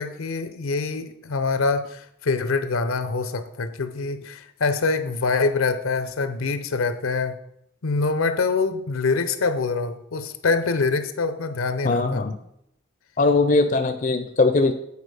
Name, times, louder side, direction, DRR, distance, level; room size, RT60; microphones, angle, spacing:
voice 1, 0.0-7.4 7.8-12.2, left 4 dB, 80° left, 10 dB, 0.6 m, -25 dB
voice 2, 11.8-12.4 13.2-14.7, left 3 dB, 40° left, 7 dB, 0.5 m, -20 dB
8.3 x 4.7 x 4.9 m, 0.76 s
head